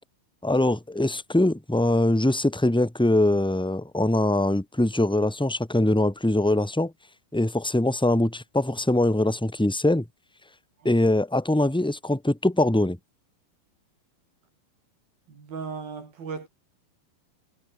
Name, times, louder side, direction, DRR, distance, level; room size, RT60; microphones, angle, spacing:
voice 1, 0.4-6.9 7.3-10.0 10.8-13.0, left 1 dB, ahead, 2.1 m, -22 dB
voice 2, 15.3-16.5, right 5 dB, 75° right, 7.7 m, -36 dB
omnidirectional pair, 4.2 m